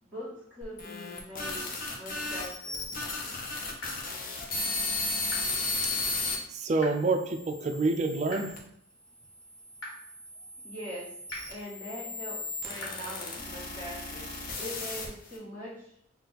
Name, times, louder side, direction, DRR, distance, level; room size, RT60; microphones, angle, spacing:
voice 1, 0.0-2.9 10.6-11.1 11.5-14.3 14.5-15.9, equal, 10° left, -12 dB, 1.4 m, -42 dB
sound 1, 0.6-6.4 7.0-8.6 9.4-15.4, left 3 dB, 45° left, 0.7 m, -35 dB
sound 2, 3.8-3.9 5.3-5.4 6.8-6.9 8.3-8.4 9.8-9.9 11.3-11.4 12.8-12.9, left 1 dB, 85° left, 1.4 m, -38 dB
voice 2, 6.5-8.5, right 3 dB, 35° right, 6 dB, 0.4 m, -27 dB
4.0 x 2.4 x 4.0 m, 0.71 s
head